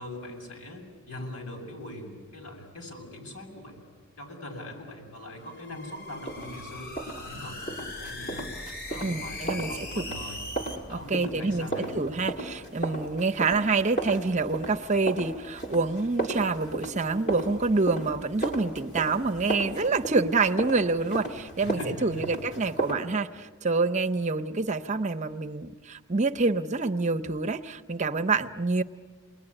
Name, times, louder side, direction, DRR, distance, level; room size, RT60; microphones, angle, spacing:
voice 1, 0.0-3.8 4.2-8.4 8.9-10.4 10.9-11.9 21.6-22.3, left 1 dB, 75° left, 1 dB, 7.7 m, -41 dB
sound 1, 5.3-10.8, left 2 dB, 60° left, 3.1 m, -40 dB
sound 2, 6.3-22.9, right 2 dB, 35° left, 3.8 m, -35 dB
voice 2, 9.0-9.7 10.9-11.7 11.9-28.8, right 3 dB, 35° right, 8 dB, 0.7 m, -27 dB
29.0 x 21.0 x 9.9 m, 1.5 s
head